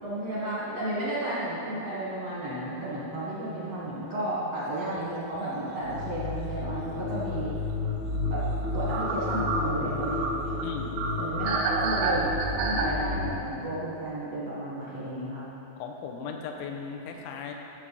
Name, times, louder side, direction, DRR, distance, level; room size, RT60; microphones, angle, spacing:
voice 1, 0.0-7.5 8.2-8.4 8.7-10.5 11.2-15.4, right 1 dB, 70° right, -9 dB, 1.4 m, -33 dB
sound 1, 2.5-5.3 5.5-13.3, left 2 dB, 70° left, 2.4 m, -33 dB
sound 2, 4.7-5.0 5.4-5.5 7.9-8.0 8.3-8.4 8.6-12.9, right 4 dB, 90° right, 3.4 m, -30 dB
voice 2, 10.6-11.0 11.6-11.7 15.8-17.5, left 6 dB, 90° left, 2 dB, 3.2 m, -37 dB
16.0 x 6.2 x 4.1 m, 2.9 s
omnidirectional pair, 5.5 m